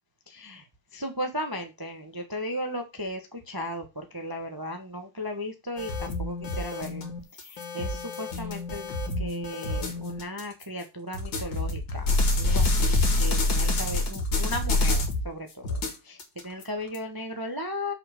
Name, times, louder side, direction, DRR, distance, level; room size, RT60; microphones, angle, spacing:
voice 1, 0.3-0.7 0.9-8.9 9.2-17.9, equal, 10° right, 4 dB, 1.1 m, -36 dB
sound 1, 5.8-10.6 11.1-15.3 15.6-17.0, left 2 dB, 55° left, 2.8 m, -27 dB
6.9 x 5.4 x 6.7 m, 0.25 s
omnidirectional pair, 2.4 m